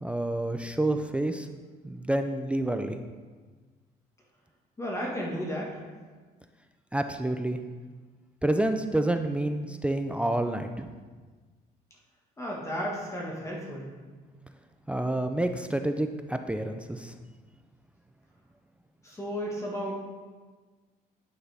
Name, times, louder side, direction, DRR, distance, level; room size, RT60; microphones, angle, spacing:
voice 1, 0.0-1.5 1.8-3.0 6.9-7.6 8.4-10.9 14.9-17.1, right 1 dB, 5° right, 7 dB, 0.4 m, -28 dB
voice 2, 4.8-5.8 12.4-14.0 19.0-20.1, equal, 15° left, -3 dB, 1.4 m, -33 dB
9.5 x 5.5 x 3.4 m, 1.4 s
cardioid pair, 110°, 17 cm